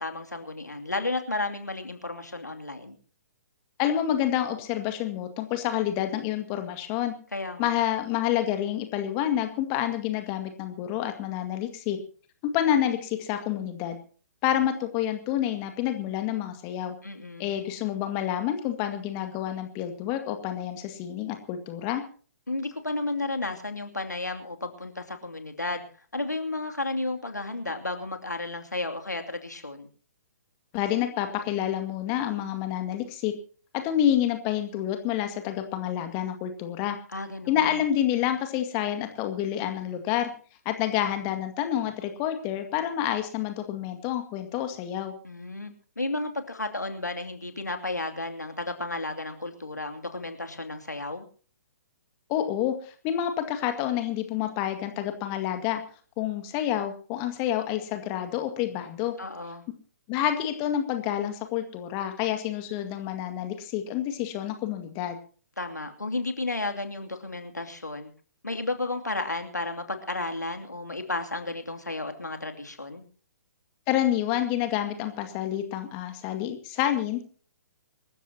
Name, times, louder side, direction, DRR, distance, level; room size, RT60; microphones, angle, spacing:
voice 1, 0.0-3.0 7.3-7.7 17.0-17.5 22.5-25.8 26.1-29.9 37.1-37.8 45.2-51.2 59.2-59.6 65.6-68.1 68.4-73.0, left 2 dB, 85° left, 5 dB, 2.7 m, -33 dB
voice 2, 3.8-7.1 7.6-12.0 12.4-14.0 14.4-17.0 17.4-22.0 30.7-33.3 33.7-37.0 37.5-40.3 40.7-45.1 52.3-55.8 56.2-59.1 60.1-65.2 73.9-77.2, left 11 dB, 30° left, 7 dB, 2.0 m, -28 dB
26.0 x 14.0 x 2.9 m, 0.40 s
figure-of-eight pair, 125°, 9 cm